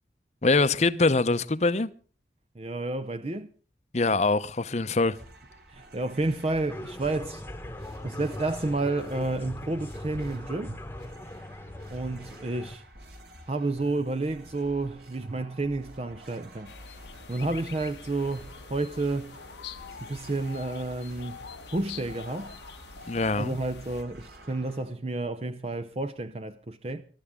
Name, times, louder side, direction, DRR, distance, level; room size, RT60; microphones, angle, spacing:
voice 1, 0.4-1.9 3.9-5.2 23.1-23.6, left 3 dB, 40° left, 0.8 m, -23 dB
voice 2, 2.5-3.5 5.7-7.4 8.0-10.8 11.9-12.8 13.5-16.7 17.3-19.4 20.0-21.4 21.7-22.5 23.3-27.0, right 2 dB, 35° right, 0.6 m, -30 dB
sound 1, 5.1-24.8, right 1 dB, 65° right, 3.7 m, -51 dB
sound 2, 6.7-12.8, left 1 dB, 15° left, 1.1 m, -40 dB
sound 3, 16.6-24.0, left 5 dB, 80° left, 1.1 m, -44 dB
22.5 x 12.5 x 3.6 m
head